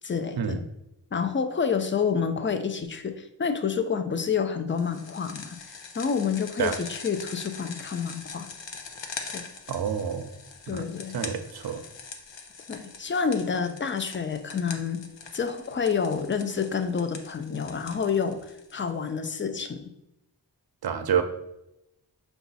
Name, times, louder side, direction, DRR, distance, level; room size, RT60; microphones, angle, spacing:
voice 1, 0.0-0.6 1.1-8.5 9.3-9.5 10.7-11.2 12.7-15.0 15.3-19.9, left 6 dB, 30° left, 7 dB, 0.4 m, -28 dB
sound 1, 4.8-19.1, left 5 dB, 80° left, 0.7 m, -43 dB
voice 2, 9.7-10.3 10.7-10.9 11.1-11.8 20.8-21.2, right 7 dB, 60° right, 8 dB, 0.5 m, -28 dB
5.7 x 2.3 x 4.0 m, 0.87 s
wide cardioid pair, 70°, 44 cm